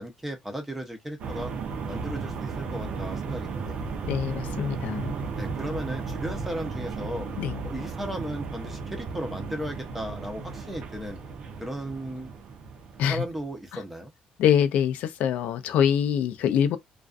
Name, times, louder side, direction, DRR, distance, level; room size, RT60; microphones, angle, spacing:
voice 1, 0.0-1.5 1.9-3.9 5.4-7.3 7.6-11.2 11.6-12.3 13.1-14.1, equal, 5° right, 0.6 m, -35 dB
sound 1, 1.2-13.5, right 4 dB, 50° right, 0.6 m, -35 dB
voice 2, 4.1-5.2 7.4-7.6 13.0-13.2 13.7-13.8 14.4-16.8, left 9 dB, 75° left, 0.4 m, -24 dB
2.4 x 2.3 x 2.4 m
cardioid pair, 165°, 3 cm